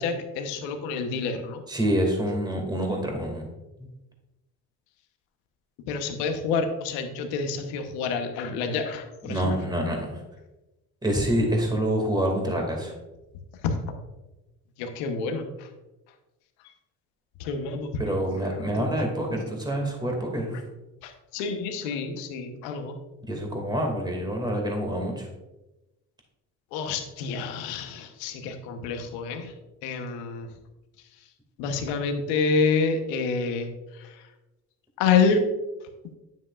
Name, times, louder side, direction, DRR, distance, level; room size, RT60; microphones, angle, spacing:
voice 1, 0.0-1.6 5.9-9.6 13.6-13.8 14.8-15.7 17.4-17.9 18.8-18.9 21.0-23.0 26.7-29.5 29.8-30.5 31.6-33.7 33.9-34.2 35.0-35.4, left 5 dB, 90° left, 6 dB, 1.1 m, -28 dB
voice 2, 1.7-3.5 9.2-10.2 11.0-12.9 18.0-20.6 23.3-25.3, right 1 dB, 10° right, 2 dB, 2.3 m, -27 dB
9.4 x 7.7 x 2.5 m, 1.0 s
supercardioid pair, 90°, 41 cm